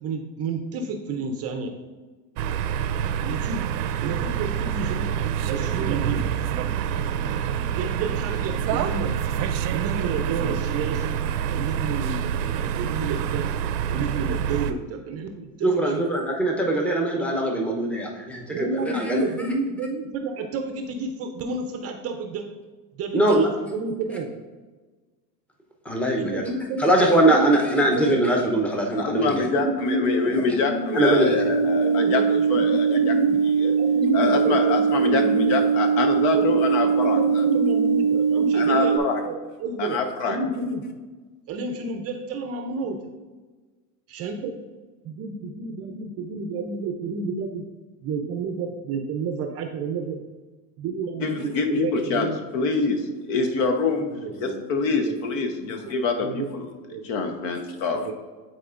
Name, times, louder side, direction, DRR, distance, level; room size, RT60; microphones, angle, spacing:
voice 1, 0.0-1.7 3.2-3.6 4.0-5.0 5.5-6.2 7.7-9.2 9.7-11.1 11.5-13.5 13.9-16.0 18.5-22.4 22.9-24.3 26.2-26.9 27.2-28.2 29.4-31.1 31.4-33.4 33.8-35.5 36.3-40.0 40.3-40.8 41.5-43.0 44.1-44.6 45.0-47.6 48.0-50.2 50.8-52.4 54.1-54.6 54.9-55.1 55.7-55.9 56.2-56.5 56.9-57.2 57.9-58.1, right 3 dB, 30° right, 4 dB, 0.6 m, -30 dB
sound 1, 2.4-14.7, right 8 dB, 75° right, 0.6 m, -26 dB
voice 2, 15.6-18.7 18.9-19.2 23.1-23.4 25.8-26.4 26.8-29.5 30.3-30.4 30.9-31.4, right 1 dB, 5° left, 1 dB, 0.8 m, -21 dB
voice 3, 28.9-33.1 33.6-33.7 34.1-35.2 35.5-37.4 38.5-39.2 39.8-40.4 51.2-52.3 52.5-53.0 53.3-54.1 54.4-56.7 57.0-58.1, left 4 dB, 55° left, 6 dB, 1.0 m, -25 dB
sound 2, 30.9-39.0, right 6 dB, 80° left, 0.8 m, -21 dB
9.2 x 4.3 x 2.5 m, 1.4 s
supercardioid pair, 125°, 48 cm